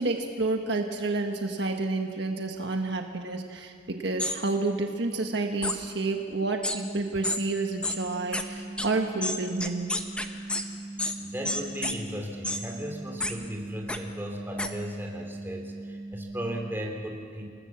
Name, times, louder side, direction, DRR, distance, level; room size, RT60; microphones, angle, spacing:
voice 1, 0.0-9.9, right 3 dB, 65° right, 4 dB, 1.5 m, -30 dB
sound 1, 4.2-4.4 5.6-5.8 6.6-6.8 7.2-7.4 7.8-8.0 8.3-8.4 8.8-8.9 9.2-10.6 11.0-11.2 11.4-11.9 12.4-12.6 13.2-13.3 13.9-14.0 14.6-14.7, left 2 dB, 5° left, 1.2 m, -29 dB
sound 2, 6.8-16.8, right 2 dB, 30° right, 2.0 m, -40 dB
voice 2, 11.2-17.5, equal, 10° right, 1 dB, 3.1 m, -36 dB
29.0 x 19.0 x 7.3 m, 2.2 s
head